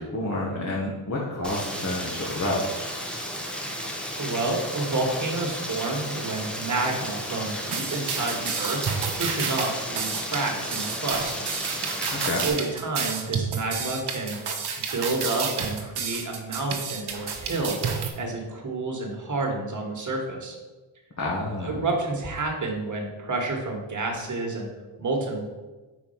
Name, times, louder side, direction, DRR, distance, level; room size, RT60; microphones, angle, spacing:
voice 1, 0.0-2.8 12.2-12.4 21.2-21.8, left 1 dB, 35° left, -4 dB, 1.4 m, -29 dB
Rain, 1.4-12.5, equal, ahead, 1.0 m, -33 dB
voice 2, 4.2-8.8 9.2-11.3 12.4-14.4 14.9-17.8 18.2-20.5 21.6-24.7 25.0-25.4, right 2 dB, 40° right, 1 dB, 1.7 m, -29 dB
sound 1, 7.7-18.1, right 6 dB, 55° right, 1.1 m, -30 dB
4.4 x 4.4 x 5.6 m, 1.2 s
cardioid pair, 65°, 47 cm